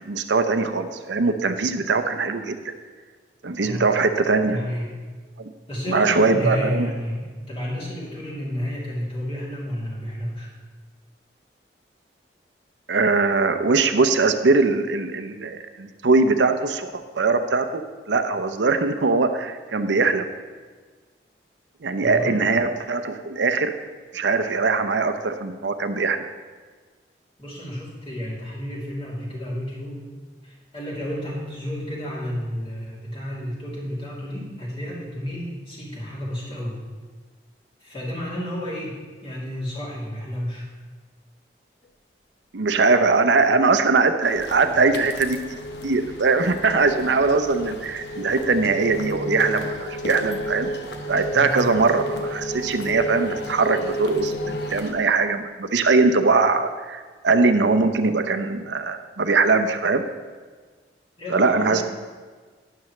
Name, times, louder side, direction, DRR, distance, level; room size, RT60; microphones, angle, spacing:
voice 1, 0.0-2.7 3.4-4.6 5.4-5.5 5.9-6.9 12.9-20.3 21.8-23.8 24.1-26.3 42.5-45.5 45.8-50.7 51.1-60.0 61.3-61.8, right 3 dB, 85° right, 8 dB, 0.7 m, -21 dB
voice 2, 3.6-3.9 4.4-4.9 5.7-10.5 22.0-22.4 27.4-30.0 30.4-36.8 37.8-40.7 44.6-44.8 51.3-51.7 61.2-61.8, equal, 30° left, -6 dB, 2.9 m, -31 dB
sound 1, 44.2-54.9, left 2 dB, 75° left, 1.1 m, -42 dB
sound 2, 44.9-54.7, equal, 55° left, 0.8 m, -32 dB
12.5 x 10.0 x 3.2 m, 1.4 s
head